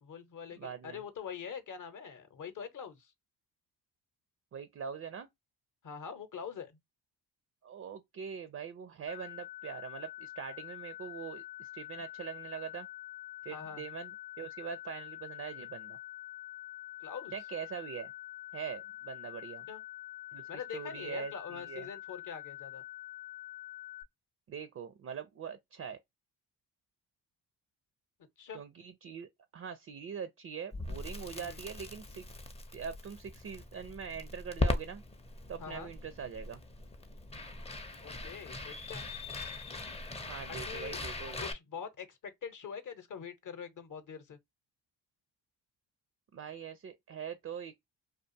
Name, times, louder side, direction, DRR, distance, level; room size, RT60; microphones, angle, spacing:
voice 1, 0.0-3.1 5.8-6.7 13.5-13.8 17.0-17.3 19.7-19.8 20.5-22.8 28.4-28.6 31.3-31.6 35.6-35.9 38.0-39.0 40.6-41.0 41.4-44.4, left 7 dB, 45° left, 0.8 m, -44 dB
voice 2, 0.6-1.0 4.5-5.3 7.6-12.9 13.4-16.0 17.3-18.1 18.5-19.7 20.3-21.9 24.5-26.0 28.5-32.2 32.7-35.0 35.5-36.6 40.2-41.5 46.3-47.7, right 7 dB, 35° right, 0.4 m, -43 dB
sound 1, 9.1-24.0, left 15 dB, 75° left, 0.5 m, -46 dB
Crackle, 30.7-41.5, left 2 dB, 15° left, 0.5 m, -40 dB
2.4 x 2.3 x 2.6 m
cardioid pair, 65°, 42 cm